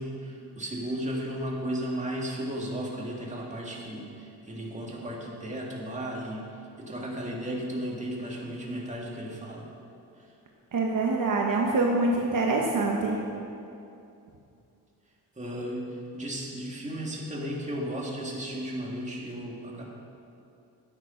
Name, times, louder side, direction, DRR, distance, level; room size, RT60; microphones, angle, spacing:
voice 1, 0.0-6.5 6.8-9.7 15.4-19.9, right 1 dB, 15° right, -3 dB, 2.2 m, -34 dB
voice 2, 10.7-13.2, right 3 dB, 55° right, 0 dB, 1.2 m, -25 dB
13.0 x 8.8 x 5.8 m, 2.7 s
cardioid pair, 125°, 40 cm